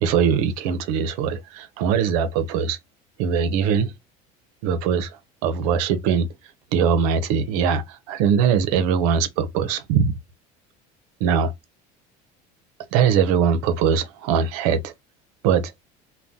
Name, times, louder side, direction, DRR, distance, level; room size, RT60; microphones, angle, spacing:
voice 1, 0.0-2.8 3.2-3.9 4.6-6.3 6.7-10.2 11.2-11.5 12.9-14.9 15.4-15.7, right 7 dB, 85° right, 0.6 m, -21 dB
2.6 x 2.2 x 3.5 m
supercardioid pair, 115°, 19 cm